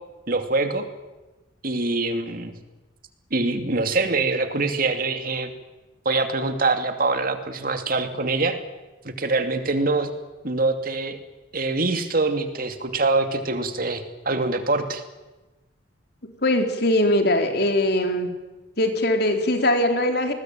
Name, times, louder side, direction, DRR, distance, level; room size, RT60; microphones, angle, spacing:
voice 1, 0.3-0.9 1.6-2.5 3.3-5.5 6.0-8.6 9.0-10.1 10.4-11.2 11.5-15.0, right 3 dB, 50° right, 7 dB, 2.5 m, -24 dB
voice 2, 16.4-18.3 18.8-20.3, left 1 dB, 60° left, 5 dB, 3.9 m, -21 dB
27.0 x 20.5 x 9.1 m, 1.1 s
head